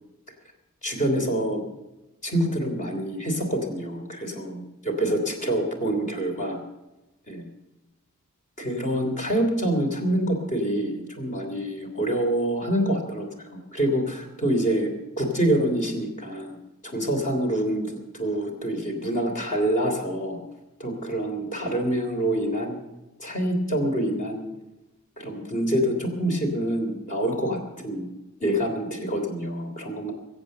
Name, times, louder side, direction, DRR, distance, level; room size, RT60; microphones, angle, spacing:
voice 1, 0.8-1.6 2.2-6.6 7.3-7.5 8.6-14.9 15.2-16.6 16.8-20.4 20.8-22.8 23.2-24.5 25.2-28.1 28.4-30.1, right 1 dB, 35° left, 3 dB, 3.2 m, -26 dB
22.5 x 8.2 x 6.7 m, 1.0 s
head